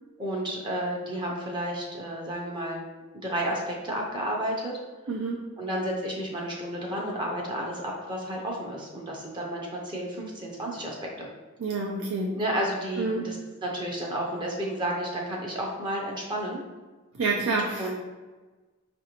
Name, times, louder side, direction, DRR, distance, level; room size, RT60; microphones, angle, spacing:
voice 1, 0.2-2.8 3.2-4.7 5.6-11.3 12.3-13.4 13.6-16.6 17.8-17.9, right 1 dB, 20° right, -2 dB, 0.5 m, -31 dB
voice 2, 5.1-5.4 11.6-12.3 13.0-13.3 17.1-17.9, right 3 dB, 80° right, -1 dB, 0.4 m, -28 dB
4.8 x 2.5 x 2.9 m, 1.3 s
head